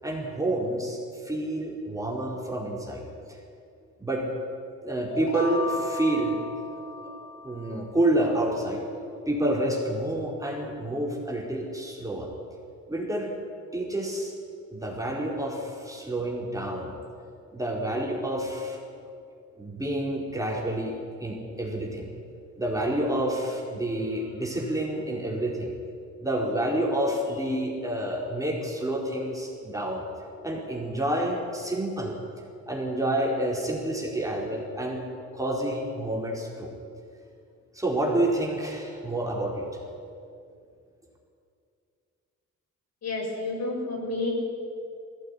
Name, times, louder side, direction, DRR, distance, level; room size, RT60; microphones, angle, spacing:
voice 1, 0.0-3.0 4.0-4.2 4.8-6.8 7.4-8.8 9.3-12.3 12.9-13.3 13.7-14.3 14.7-17.0 17.5-18.8 19.6-22.1 22.6-25.7 26.2-30.0 30.4-32.1 32.7-35.0 35.3-36.7 37.7-39.8, right 1 dB, 10° right, -2 dB, 4.6 m, -28 dB
sound 1, 5.1-7.9, left 2 dB, 80° left, 5.5 m, -35 dB
voice 2, 43.0-44.3, left 2 dB, 60° left, 0 dB, 6.7 m, -30 dB
18.5 x 16.5 x 10.0 m, 2.4 s
cardioid pair, 90°, 30 cm